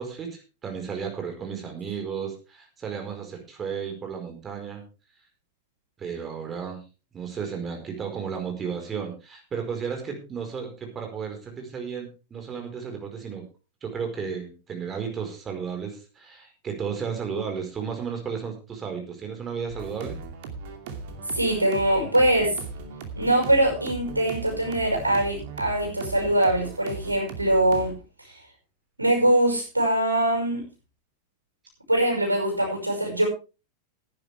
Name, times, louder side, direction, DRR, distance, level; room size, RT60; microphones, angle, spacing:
voice 1, 0.0-4.8 6.0-6.8 7.1-13.4 13.8-20.2 28.3-28.4, right 6 dB, 20° right, 3 dB, 4.8 m, -33 dB
sound 1, 19.7-27.9, right 4 dB, 50° right, 2.6 m, -38 dB
voice 2, 21.3-22.6 23.1-27.9 29.0-30.6 31.9-33.3, right 1 dB, 85° right, 2 dB, 5.7 m, -22 dB
17.5 x 10.5 x 3.5 m, 0.32 s
figure-of-eight pair, 90°, 0 cm